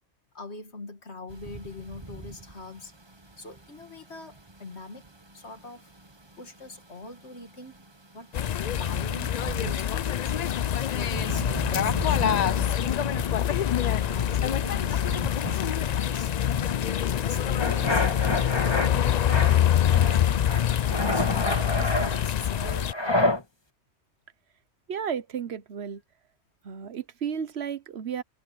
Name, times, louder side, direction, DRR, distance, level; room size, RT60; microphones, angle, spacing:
voice 1, 0.3-2.9 3.4-5.9 6.4-7.8 8.1-10.4 10.9-13.0 14.1-16.3 16.8-23.4, left 2 dB, 75° left, 2.6 m, -42 dB
sound 1, 1.3-16.8, right 3 dB, 25° right, 1.3 m, -42 dB
sound 2, 8.3-22.9, left 10 dB, 50° left, 0.5 m, -25 dB
sound 3, 17.6-18.9 19.3-20.2 20.5-23.4, left 1 dB, 25° left, 1.7 m, -28 dB
voice 2, 24.9-26.0 26.6-28.2, right 7 dB, 70° right, 1.3 m, -33 dB
omnidirectional pair, 1.1 m